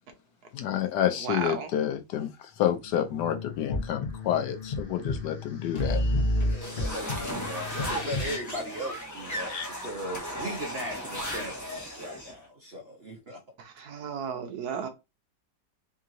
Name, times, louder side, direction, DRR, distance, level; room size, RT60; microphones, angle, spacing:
voice 1, 0.5-6.0 9.5-9.7, left 10 dB, 75° left, 1.1 m, -29 dB
voice 2, 1.2-1.7 13.8-14.9, right 6 dB, 65° right, 1.2 m, -33 dB
sound 1, 2.6-8.4, left 1 dB, 40° left, 1.0 m, -31 dB
voice 3, 6.5-13.4, right 1 dB, 50° right, 0.8 m, -38 dB
sound 2, 6.6-12.3, equal, 15° left, 0.7 m, -36 dB
3.7 x 3.0 x 3.7 m
omnidirectional pair, 2.0 m